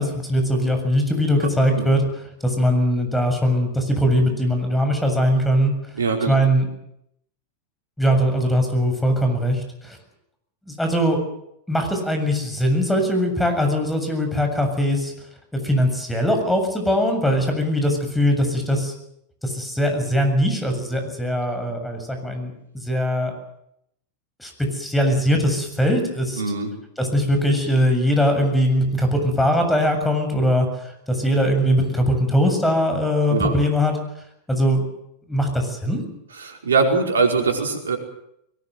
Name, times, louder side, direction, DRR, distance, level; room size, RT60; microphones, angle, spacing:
voice 1, 0.0-2.0 2.4-5.7 6.3-6.7 8.0-10.0 10.7-11.2 11.7-15.1 15.6-18.9 19.4-23.3 24.4-26.4 27.0-30.7 31.1-33.9 34.5-34.9 35.3-36.0, equal, 5° left, 5 dB, 7.3 m, -21 dB
voice 2, 6.0-6.3 26.4-26.7 33.3-33.5 36.3-38.0, right 4 dB, 75° right, 3 dB, 4.9 m, -21 dB
22.5 x 20.0 x 7.8 m, 0.76 s
figure-of-eight pair, 90°, 0 cm